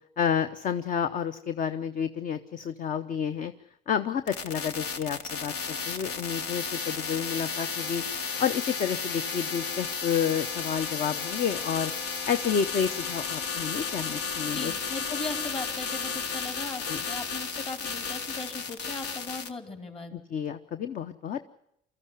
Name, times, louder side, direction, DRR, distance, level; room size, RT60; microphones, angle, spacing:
voice 1, 0.2-3.5 3.9-8.0 8.4-11.9 12.3-14.7 16.9-17.0 20.1-21.4, left 7 dB, 50° left, 10 dB, 0.9 m, -30 dB
sound 1, 4.3-19.5, left 5 dB, 90° left, 1.5 m, -33 dB
voice 2, 14.4-20.2, left 3 dB, 35° left, 5 dB, 4.3 m, -38 dB
24.5 x 14.5 x 9.9 m, 0.80 s
cardioid pair, 110°, 17 cm